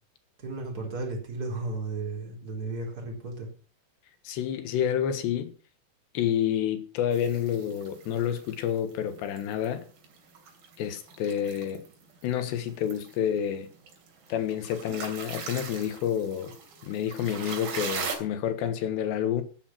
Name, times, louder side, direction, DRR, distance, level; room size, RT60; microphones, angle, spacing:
voice 1, 0.4-3.5, right 3 dB, 20° right, 4.1 m, -34 dB
voice 2, 4.3-5.5 6.2-9.9 10.8-11.8 12.2-13.7 14.3-16.5 16.8-19.4, left 9 dB, 85° left, 3.7 m, -29 dB
sound 1, 7.1-18.2, right 5 dB, 60° right, 4.3 m, -41 dB
12.5 x 9.9 x 6.1 m
omnidirectional pair, 4.9 m